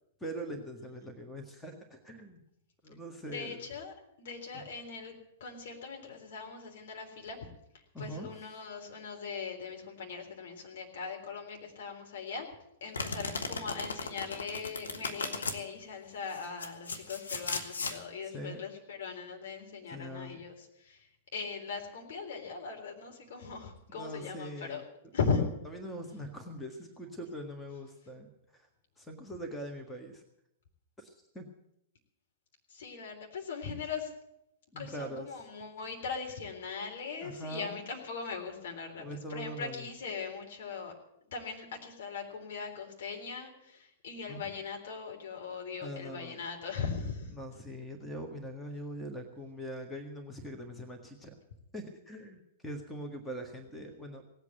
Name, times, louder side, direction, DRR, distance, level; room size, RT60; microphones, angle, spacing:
voice 1, 0.2-2.4 2.8-3.6 7.9-8.3 18.3-18.6 19.9-20.4 23.9-24.8 25.7-28.7 29.0-30.2 31.0-31.5 34.7-35.3 37.2-37.8 39.0-39.9 44.3-44.5 45.8-46.4 47.3-51.3 51.7-54.2, equal, 10° left, 5 dB, 1.7 m, -42 dB
voice 2, 3.3-5.1 5.4-7.5 8.0-12.5 12.8-24.8 25.1-25.4 32.7-34.1 34.8-40.9 41.3-47.3, left 5 dB, 60° left, 1 dB, 3.6 m, -39 dB
Domestic sounds home sounds, 12.9-15.6 16.3-18.0, left 3 dB, 75° left, 1.5 m, -36 dB
17.5 x 8.3 x 9.1 m, 0.80 s
figure-of-eight pair, 105°, 0 cm